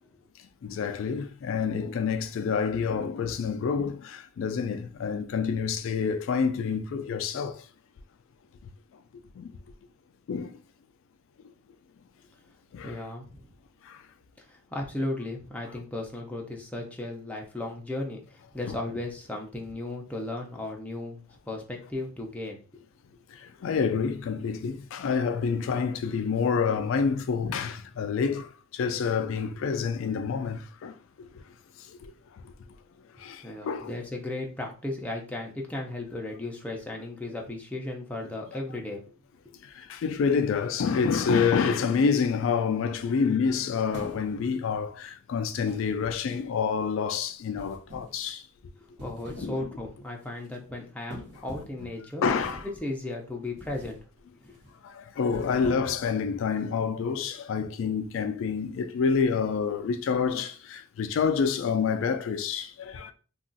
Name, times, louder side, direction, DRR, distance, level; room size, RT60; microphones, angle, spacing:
voice 1, 0.6-7.7 9.4-9.6 10.3-10.6 12.7-13.0 13.8-14.0 18.7-18.8 23.3-31.4 31.8-32.1 32.4-32.5 33.2-33.9 39.6-48.4 49.4-49.7 52.2-52.7 54.8-63.1, left 6 dB, 65° left, 0.3 m, -28 dB
voice 2, 12.8-13.5 14.4-22.6 33.4-39.0 49.0-52.2 52.8-54.0 54.3-54.6, left 2 dB, 5° left, 0.5 m, -35 dB
sound 1, 43.9-44.6 45.7-46.6 47.5-48.2 48.8-49.7 50.0-50.3 51.1-51.8 52.2-52.8 53.6-54.0 54.4-54.7 55.2-56.1, right 1 dB, 50° right, 1.1 m, -44 dB
2.4 x 2.3 x 3.8 m
head